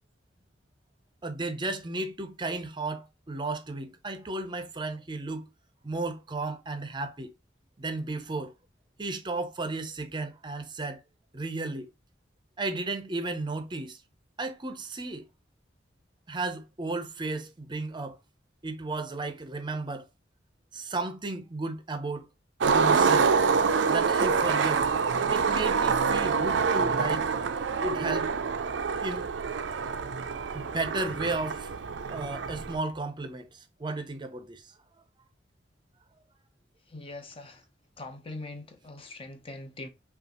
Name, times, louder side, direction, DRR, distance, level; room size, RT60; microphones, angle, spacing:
voice 1, 1.2-5.5 5.8-7.3 7.8-8.5 9.0-11.0 11.3-11.9 12.6-14.0 14.4-15.2 16.3-18.2 18.6-20.0 20.7-22.3 22.7-23.4 23.9-24.8 25.3-27.3 27.8-28.3 29.0-29.3 30.5-31.7 32.1-34.6, right 2 dB, 25° right, 0.6 m, -34 dB
Skateboard, 22.6-32.8, right 5 dB, 75° right, 0.4 m, -26 dB
voice 2, 36.9-37.6 38.0-39.9, left 2 dB, 30° left, 0.7 m, -42 dB
5.4 x 2.4 x 2.9 m
head